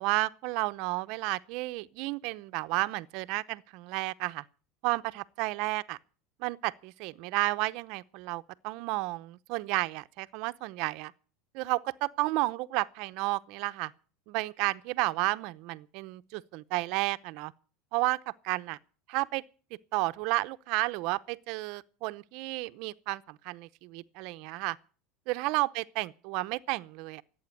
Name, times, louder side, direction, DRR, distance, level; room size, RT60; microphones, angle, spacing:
voice 1, 0.0-4.4 4.8-6.0 6.4-11.1 11.5-13.9 14.3-17.5 17.9-18.8 19.1-19.4 19.9-24.8 25.3-27.2, right 22 dB, 60° right, 0.7 m, -32 dB
17.0 x 8.6 x 8.4 m
supercardioid pair, 140°, 0 cm